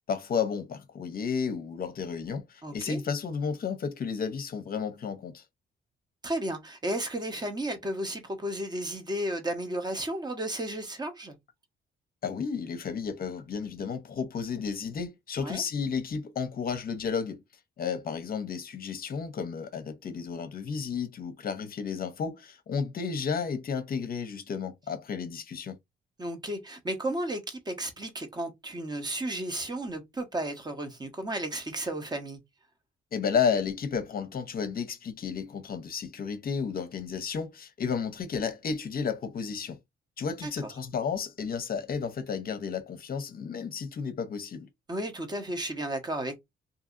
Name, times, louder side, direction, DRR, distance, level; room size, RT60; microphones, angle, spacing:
voice 1, 0.1-5.4 12.2-17.4 17.8-25.8 33.1-39.8 40.2-44.7, left 6 dB, 50° left, 0.7 m, -32 dB
voice 2, 2.6-3.0 6.2-11.3 15.4-15.6 26.2-32.4 40.4-40.5 44.9-46.4, right 1 dB, 20° right, 0.9 m, -33 dB
2.7 x 2.6 x 2.5 m
cardioid pair, 90°, 20 cm